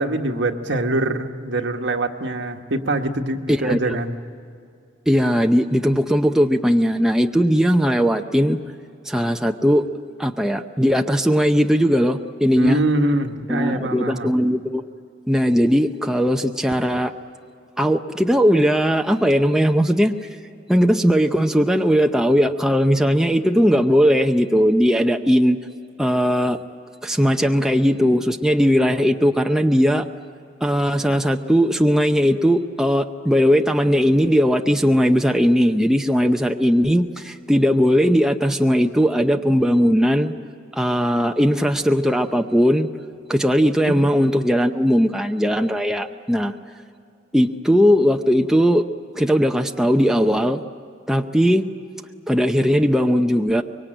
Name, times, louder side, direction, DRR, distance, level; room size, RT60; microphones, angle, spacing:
voice 1, 0.0-4.2 12.5-14.4 43.8-44.0, right 1 dB, 70° right, 4 dB, 1.5 m, -24 dB
voice 2, 3.5-4.0 5.1-8.6 9.0-9.8 10.2-12.8 13.5-14.8 15.3-17.1 17.8-20.2 20.7-25.6 26.0-26.6 27.0-30.1 30.6-40.3 40.7-42.9 43.3-46.6 47.3-48.8 49.1-50.6 51.1-51.6 52.3-53.6, equal, 5° right, 4 dB, 0.6 m, -18 dB
25.0 x 23.0 x 9.0 m, 2.4 s
head